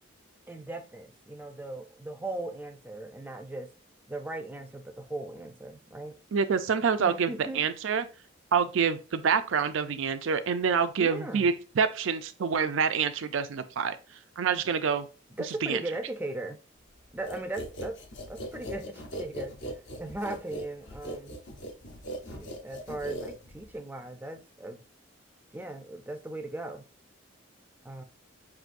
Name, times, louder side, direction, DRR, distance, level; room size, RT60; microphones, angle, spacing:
voice 1, 0.5-3.7 4.1-6.2 7.0-7.6 11.0-11.5 15.3-16.6 17.1-18.0 18.3-19.5 20.0-21.4 22.3-24.8 25.5-26.9 27.8-28.0, right 2 dB, 10° right, 0.4 m, -38 dB
voice 2, 6.3-8.0 8.5-14.0 14.4-15.1 15.6-15.8, right 6 dB, 70° right, 0.4 m, -27 dB
sound 1, 17.3-23.8, right 1 dB, 60° left, 0.8 m, -39 dB
6.0 x 2.6 x 2.5 m
head